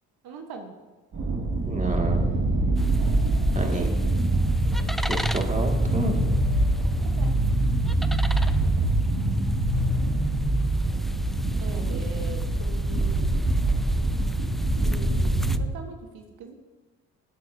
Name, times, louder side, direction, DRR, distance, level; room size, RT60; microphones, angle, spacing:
voice 1, 0.2-0.7 5.3-6.4 6.8-7.3 8.8-8.9 11.6-13.4 14.8-16.5, right 4 dB, 65° right, 4 dB, 1.4 m, -42 dB
sound 1, 1.1-15.6, right 2 dB, 50° right, 2.5 m, -25 dB
voice 2, 1.7-2.4 3.5-3.9 5.1-6.2, right 2 dB, 20° right, 2 dB, 2.1 m, -29 dB
sound 2, 2.8-15.6, equal, ahead, 0.4 m, -30 dB
16.5 x 8.4 x 2.8 m, 1.2 s
supercardioid pair, 55°, 39 cm